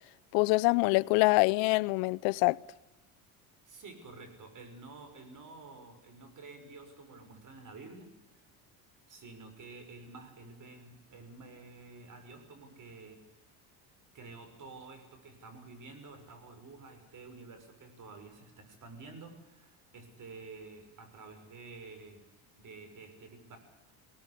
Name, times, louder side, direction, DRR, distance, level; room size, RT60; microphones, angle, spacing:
voice 1, 0.3-2.6, left 24 dB, 75° left, 0.7 m, -25 dB
voice 2, 3.6-8.1 8.4-8.5 9.1-13.4 14.1-22.2 22.6-23.6, right 3 dB, 45° right, 6.1 m, -50 dB
20.0 x 18.5 x 8.2 m
supercardioid pair, 100°, 44 cm